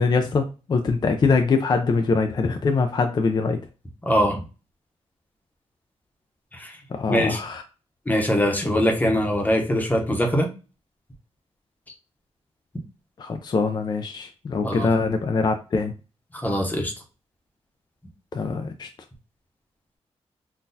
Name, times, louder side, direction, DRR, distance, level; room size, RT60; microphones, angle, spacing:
voice 1, 0.0-3.6 6.9-7.6 13.2-15.9 18.3-18.9, left 4 dB, 40° left, 6 dB, 0.3 m, -23 dB
voice 2, 4.1-4.4 6.6-6.7 7.1-7.4 8.1-10.5 14.6-14.9 16.4-16.9, equal, 15° left, 3 dB, 0.8 m, -22 dB
3.8 x 2.3 x 2.7 m, 0.32 s
wide cardioid pair, 105°, 11 cm